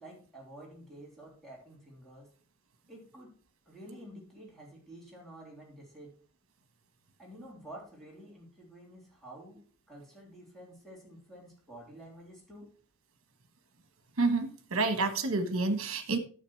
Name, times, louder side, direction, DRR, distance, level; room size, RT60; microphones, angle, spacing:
voice 1, 0.0-2.3 2.9-3.3 3.6-6.1 7.2-12.7, right 1 dB, ahead, -3 dB, 3.3 m, -50 dB
voice 2, 14.2-16.2, right 3 dB, 65° right, 10 dB, 1.4 m, -29 dB
9.9 x 6.7 x 4.6 m, 0.42 s
head